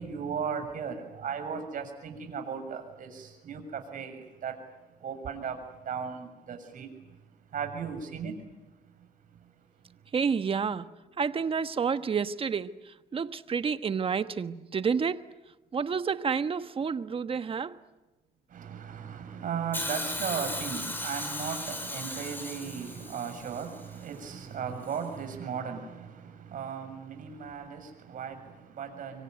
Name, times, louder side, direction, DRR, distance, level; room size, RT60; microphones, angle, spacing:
voice 1, 0.0-4.6 5.0-8.5 9.0-10.0 18.5-29.2, right 7 dB, 50° right, 6.9 m, -37 dB
voice 2, 10.1-10.9 11.2-15.3 15.7-17.8, right 6 dB, 30° right, 1.3 m, -29 dB
Hiss, 19.7-23.9 24.9-25.0, left 1 dB, 10° left, 4.8 m, -36 dB
25.5 x 24.0 x 9.5 m
cardioid pair, 110°, 17 cm